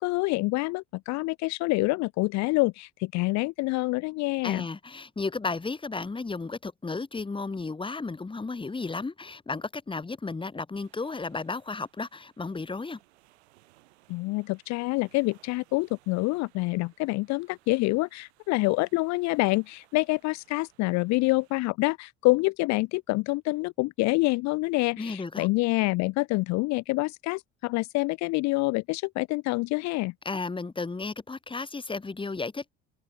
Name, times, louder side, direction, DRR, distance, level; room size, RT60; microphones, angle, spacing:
voice 1, 0.0-4.6 14.1-30.1, left 23 dB, 55° left, 0.6 m, -27 dB
voice 2, 4.4-13.0 25.0-25.5 30.2-32.7, left 3 dB, 15° left, 1.4 m, -33 dB
sound 1, 10.8-21.6, right 19 dB, 75° right, 7.8 m, -64 dB
hypercardioid pair, 60°, 33 cm